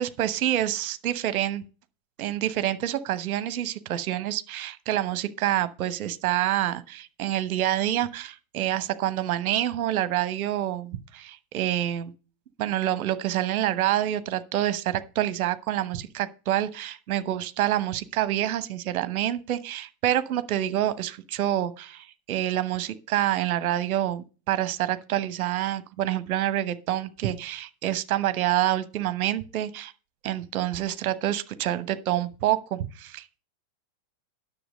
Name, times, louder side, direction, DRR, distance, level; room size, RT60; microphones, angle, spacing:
voice 1, 0.0-1.6 2.2-12.1 12.6-29.9 30.2-33.4, right 12 dB, 45° right, 1.0 m, -27 dB
10.0 x 6.9 x 5.1 m
figure-of-eight pair, 90°, 0 cm